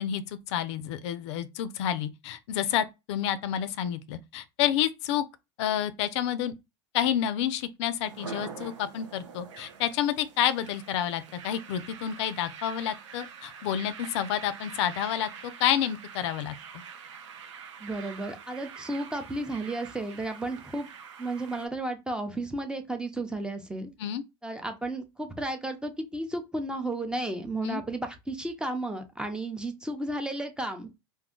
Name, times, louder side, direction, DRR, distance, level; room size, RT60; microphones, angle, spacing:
voice 1, 0.0-5.2 5.6-6.5 6.9-16.5 24.0-24.2 27.6-27.8, left 10 dB, 75° left, 0.4 m, -29 dB
sound 1, 8.0-21.7, right 6 dB, 90° right, 0.7 m, -45 dB
voice 2, 17.8-20.9 21.2-23.9 24.4-30.9, right 2 dB, 5° right, 0.6 m, -33 dB
2.6 x 2.3 x 3.7 m
supercardioid pair, 110°, 15 cm